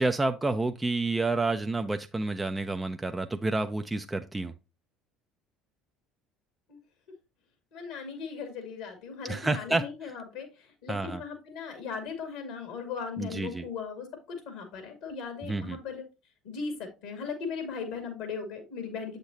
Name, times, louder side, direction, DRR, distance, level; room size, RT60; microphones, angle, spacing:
voice 1, 0.0-4.5 9.2-10.1 10.9-11.2 13.2-13.6 15.4-15.8, right 2 dB, 15° right, 7 dB, 0.6 m, -29 dB
voice 2, 7.7-16.0 16.4-19.2, left 5 dB, 70° left, 6 dB, 2.1 m, -38 dB
7.9 x 6.7 x 2.7 m, 0.27 s
figure-of-eight pair, 60°, 0 cm